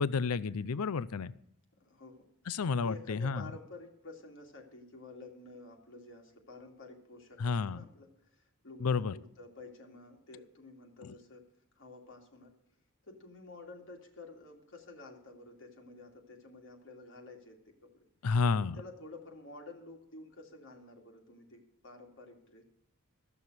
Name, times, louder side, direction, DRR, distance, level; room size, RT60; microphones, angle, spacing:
voice 1, 0.0-1.3 2.5-3.5 7.4-7.8 8.8-9.1 18.2-18.8, left 4 dB, 80° left, 18 dB, 0.5 m, -30 dB
voice 2, 1.7-11.5 11.8-12.5 13.1-18.0 18.7-22.6, left 2 dB, 60° left, 2 dB, 2.6 m, -51 dB
14.5 x 7.1 x 7.9 m, 0.72 s
head